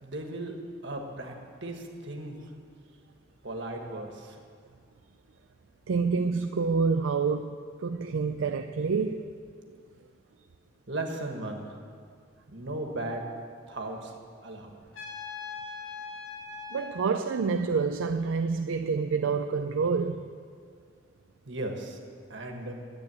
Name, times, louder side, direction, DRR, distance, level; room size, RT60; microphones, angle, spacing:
voice 1, 0.0-0.5 0.8-1.3 1.6-2.4 3.4-4.4 10.9-11.7 12.5-13.2 13.7-14.1 14.4-14.8 21.5-22.0 22.3-22.7, right 2 dB, 65° right, 1.5 m, -36 dB
voice 2, 5.9-9.2 16.7-20.2, right 5 dB, 85° right, 0.4 m, -27 dB
Trumpet, 14.9-17.0, left 5 dB, 85° left, 1.8 m, -40 dB
11.0 x 8.6 x 8.4 m
head